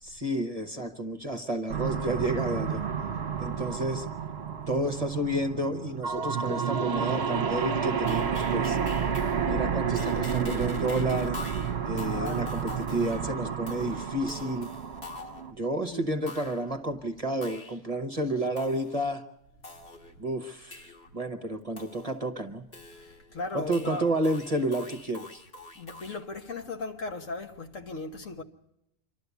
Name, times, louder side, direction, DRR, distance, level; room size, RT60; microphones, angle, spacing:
voice 1, 0.0-2.8 3.4-4.1 4.7-8.8 9.4-11.4 11.8-14.7 15.5-19.2 20.2-22.6 23.5-25.4, right 1 dB, 30° right, 0.9 m, -31 dB
sound 1, 1.7-15.5, right 7 dB, 55° right, 1.1 m, -30 dB
sound 2, 8.1-9.6 9.9-15.6 16.3-16.8 17.4-17.8 18.6-19.0 19.6-20.2 20.7-21.1 21.8-22.3 22.7-23.4 23.7-26.2, left 3 dB, 50° left, 2.0 m, -45 dB
voice 2, 12.1-12.7 15.9-16.2 23.0-24.0 25.8-28.4, left 3 dB, 70° left, 1.7 m, -37 dB
26.5 x 12.5 x 8.1 m
omnidirectional pair, 1.4 m